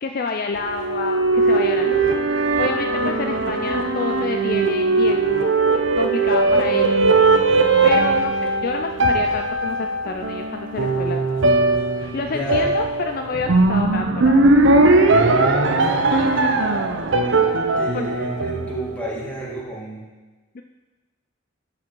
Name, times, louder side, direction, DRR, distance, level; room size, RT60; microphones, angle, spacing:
voice 1, 0.0-2.1 2.6-5.5 6.0-7.2 7.8-11.2 12.0-14.7 17.9-18.1 20.5-20.6, left 4 dB, 45° left, 5 dB, 0.4 m, -29 dB
sound 1, 0.6-19.1, right 3 dB, 65° right, 0.7 m, -19 dB
voice 2, 12.3-12.7 15.1-16.5 17.2-17.5 17.8-20.0, equal, 5° left, -6 dB, 2.0 m, -32 dB
13.0 x 5.1 x 4.6 m, 1.2 s
head